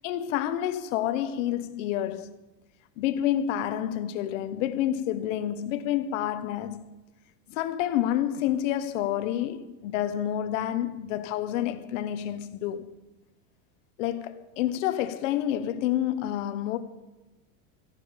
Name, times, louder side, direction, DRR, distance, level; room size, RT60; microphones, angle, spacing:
voice 1, 0.0-2.3 3.0-7.0 7.5-12.9 14.0-16.8, left 11 dB, 65° left, 1.1 m, -29 dB
14.0 x 11.0 x 5.2 m
supercardioid pair, 175°, 41 cm